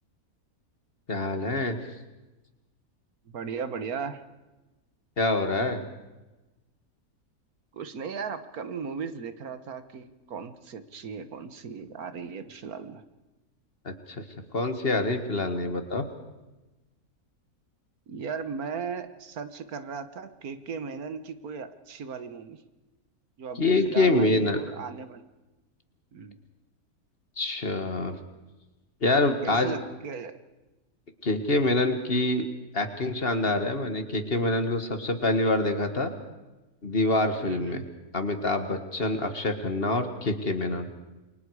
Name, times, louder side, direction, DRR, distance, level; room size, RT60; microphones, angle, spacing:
voice 1, 1.1-1.8 5.2-5.8 13.9-14.2 14.5-16.0 23.6-24.6 27.4-28.2 29.0-29.8 31.2-32.5 32.7-36.1 36.8-37.8 38.1-40.9, left 2 dB, 40° left, 7 dB, 2.0 m, -26 dB
voice 2, 3.3-4.2 7.7-13.0 18.1-22.6 23.4-25.2 26.1-26.4 29.4-30.4 37.4-37.9, right 5 dB, 75° right, 10 dB, 1.7 m, -37 dB
29.0 x 23.5 x 4.9 m, 1.1 s
omnidirectional pair, 1.6 m